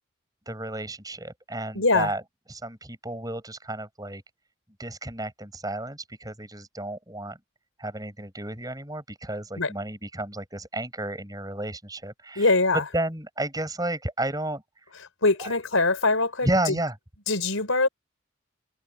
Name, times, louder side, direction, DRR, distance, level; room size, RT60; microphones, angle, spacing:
voice 1, 0.5-2.2 2.5-4.2 4.8-7.4 7.8-14.6 15.4-15.5 16.4-17.0, right 1 dB, 20° right, 7.5 m, -32 dB
voice 2, 1.7-2.1 9.6-9.7 12.4-12.8 15.2-16.5 17.3-17.9, left 3 dB, 85° left, 4.8 m, -22 dB
head